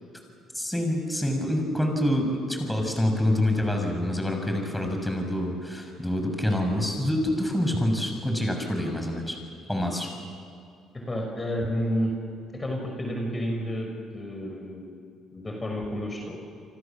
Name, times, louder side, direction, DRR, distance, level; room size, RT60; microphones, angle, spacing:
voice 1, 0.5-9.4 9.7-10.1, left 1 dB, 5° left, 3 dB, 6.8 m, -26 dB
voice 2, 10.9-12.1 12.5-15.0 15.3-16.4, equal, 25° left, 1 dB, 5.8 m, -30 dB
29.5 x 25.0 x 7.5 m, 2.5 s
supercardioid pair, 70°, 0 cm